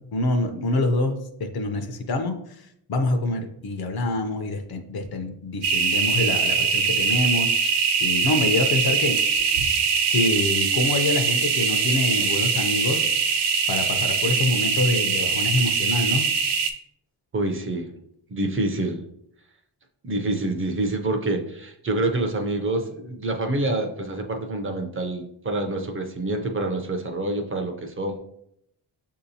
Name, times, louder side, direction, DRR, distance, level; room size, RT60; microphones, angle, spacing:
voice 1, 0.1-2.3 2.9-9.2 10.1-13.0 13.7-16.3, left 2 dB, 60° left, 6 dB, 0.7 m, -26 dB
sound 1, 5.6-16.7, right 5 dB, 70° right, 0.6 m, -22 dB
voice 2, 17.3-17.9 18.3-19.0 20.0-28.2, right 2 dB, 30° right, 4 dB, 0.5 m, -27 dB
6.3 x 2.8 x 2.7 m, 0.76 s
wide cardioid pair, 120°, 42 cm